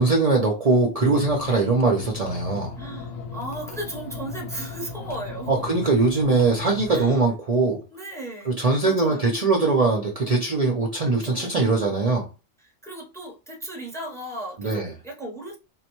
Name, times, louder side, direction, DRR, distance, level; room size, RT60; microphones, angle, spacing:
voice 1, 0.0-2.7 5.5-7.8 8.5-12.3 14.6-14.9, right 3 dB, 50° right, 0.4 m, -21 dB
sound 1, 1.0-7.2, left 3 dB, 75° left, 1.0 m, -36 dB
voice 2, 2.8-5.7 6.9-7.2 7.9-8.6 8.8-9.3 11.0-11.6 12.6-15.6, right 1 dB, 5° left, 0.5 m, -36 dB
3.7 x 2.1 x 3.0 m
omnidirectional pair, 1.4 m